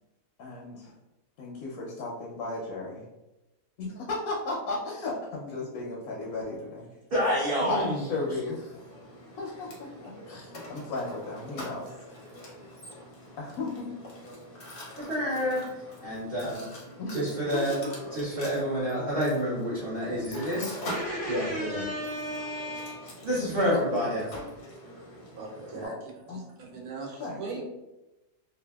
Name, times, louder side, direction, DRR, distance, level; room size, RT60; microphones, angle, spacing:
voice 1, 0.4-0.9 1.4-3.1 3.8-6.9 7.6-8.7 9.4-11.9 13.4-13.9 17.0-17.2 17.5-17.6 24.3-24.4 25.7-26.0 26.3-26.4 27.2-27.6, left 3 dB, 85° left, -3 dB, 1.0 m, -35 dB
voice 2, 7.1-8.0 15.0-15.7 16.0-16.7 17.1-17.8 18.1-24.3, equal, 55° right, -8 dB, 0.7 m, -29 dB
Mechanisms, 7.7-25.9, left 1 dB, 50° left, 0.7 m, -44 dB
voice 3, 25.4-25.9 26.3-27.6, right 4 dB, 75° right, -1 dB, 1.1 m, -39 dB
2.6 x 2.3 x 2.2 m, 0.99 s
omnidirectional pair, 1.5 m